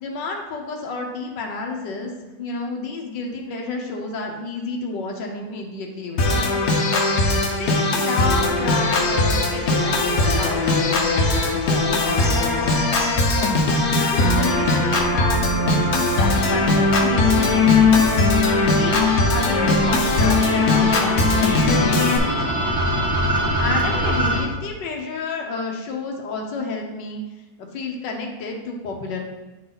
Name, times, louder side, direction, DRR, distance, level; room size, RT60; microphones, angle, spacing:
voice 1, 0.0-2.1 2.4-6.6 7.6-12.9 13.9-18.1 18.7-22.5 23.6-27.2 27.7-29.2, left 3 dB, 85° left, 1 dB, 1.5 m, -30 dB
Organ, 6.2-22.2, left 3 dB, 60° left, 1.3 m, -19 dB
sound 1, 8.2-24.4, right 1 dB, 10° right, 1.1 m, -28 dB
8.5 x 4.3 x 3.9 m, 1.1 s
omnidirectional pair, 1.9 m